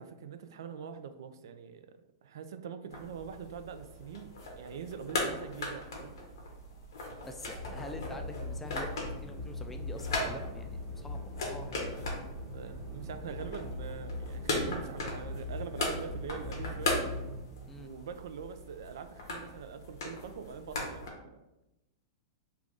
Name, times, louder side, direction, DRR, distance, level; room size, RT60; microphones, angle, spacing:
voice 1, 0.0-6.1 12.5-17.0 17.7-21.1, right 7 dB, 75° right, 10 dB, 0.3 m, -44 dB
sound 1, 2.9-21.1, left 2 dB, 85° left, 1.0 m, -39 dB
voice 2, 7.2-12.0 17.7-17.9, left 2 dB, 10° left, 5 dB, 0.3 m, -46 dB
sound 2, 7.5-17.4, left 1 dB, 10° right, 0.8 m, -40 dB
3.3 x 2.4 x 3.8 m, 0.95 s
hypercardioid pair, 140°, 2 cm